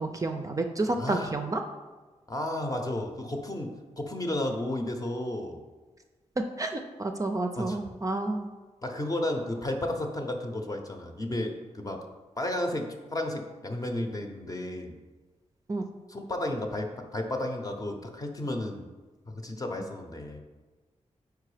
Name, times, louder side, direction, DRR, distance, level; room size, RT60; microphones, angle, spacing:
voice 1, 0.0-1.6 6.6-8.5 15.7-15.8, right 2 dB, 30° right, 5 dB, 0.5 m, -30 dB
voice 2, 1.0-1.3 2.3-5.6 7.6-7.8 8.8-12.0 12.4-15.0 16.1-16.9 17.1-18.9 19.3-20.4, left 1 dB, 30° left, 3 dB, 0.8 m, -33 dB
4.6 x 4.6 x 4.9 m, 1.3 s
wide cardioid pair, 95°, 12 cm